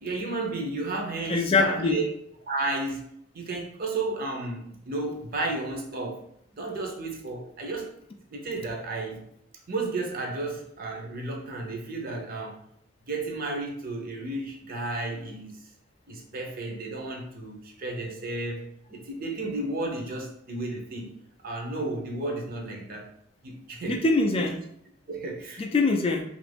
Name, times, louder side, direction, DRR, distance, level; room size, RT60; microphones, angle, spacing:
voice 1, 0.0-2.1 2.5-3.0 3.3-6.3 6.5-7.9 8.3-9.2 9.7-12.6 13.1-15.6 16.1-21.1 21.4-23.1 23.4-24.0 25.1-25.7, right 2 dB, 50° right, 1 dB, 0.7 m, -33 dB
voice 2, 1.3-2.0 23.9-24.5 25.6-26.2, left 3 dB, 30° left, 4 dB, 0.3 m, -23 dB
2.8 x 2.5 x 3.4 m, 0.71 s
head